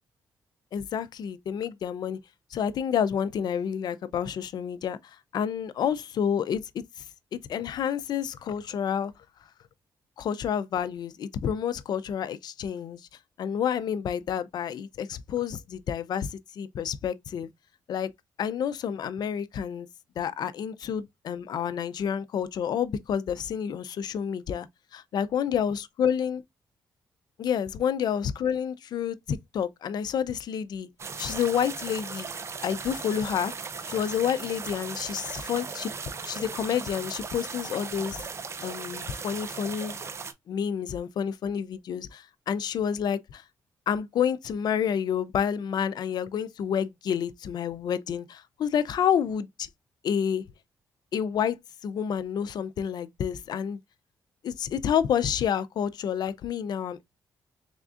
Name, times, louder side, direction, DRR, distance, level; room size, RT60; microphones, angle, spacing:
voice 1, 0.7-2.2 2.5-5.0 5.3-7.0 7.3-9.1 10.2-13.0 13.4-17.5 17.9-18.1 18.4-19.9 20.2-26.4 27.4-30.9 31.2-32.3 32.6-33.5 33.9-35.9 36.2-38.2 38.6-40.0 40.5-43.4 43.9-49.7 50.0-50.4 51.1-51.6 51.8-53.8 54.4-57.0, left 8 dB, 65° left, 0.4 m, -29 dB
sound 1, 31.0-40.3, right 5 dB, 35° right, 0.5 m, -37 dB
3.6 x 3.4 x 2.4 m
cardioid pair, 100°, 8 cm